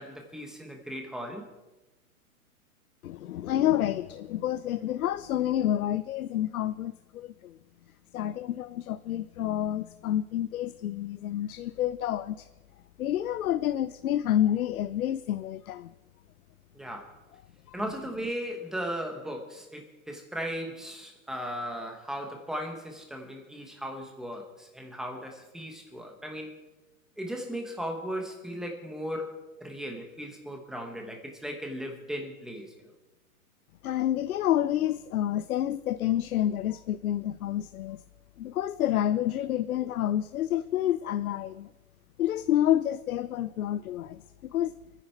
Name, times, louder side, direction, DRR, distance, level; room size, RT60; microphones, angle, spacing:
voice 1, 0.0-1.5 16.7-17.1 17.7-26.6 27.2-32.9, equal, ahead, 2 dB, 1.2 m, -37 dB
voice 2, 3.0-7.6 8.1-12.5 13.0-15.9 17.7-17.8 33.8-38.0 38.4-41.7 42.2-44.7, left 11 dB, 75° left, 14 dB, 0.7 m, -29 dB
26.0 x 10.0 x 4.5 m, 1.1 s
hypercardioid pair, 165°, 43 cm